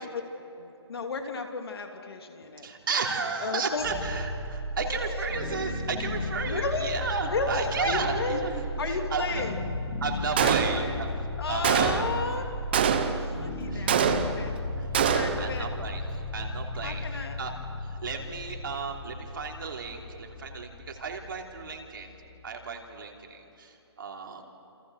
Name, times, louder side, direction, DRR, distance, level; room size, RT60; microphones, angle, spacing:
voice 1, 0.5-2.7 3.4-3.8 4.8-5.3 6.5-6.9 7.3-8.5 8.8-9.6 10.4-11.0 11.4-12.5 12.9-14.5 15.1-15.7 16.8-17.4, left 4 dB, 60° left, 4 dB, 2.8 m, -33 dB
voice 2, 2.6-11.1 11.5-12.0 13.7-14.0 14.8-22.1 22.4-24.4, right 5 dB, 50° right, 1 dB, 3.3 m, -34 dB
sound 1, 3.8-22.8, left 2 dB, 35° left, 6.1 m, -35 dB
Gunshot gunfire, 10.4-11.1 11.6-12.2 12.7-13.3 13.9-14.5 14.9-15.5, right 8 dB, 20° right, 0.9 m, -25 dB
28.5 x 28.0 x 6.4 m, 3.0 s
hypercardioid pair, 175°, 15 cm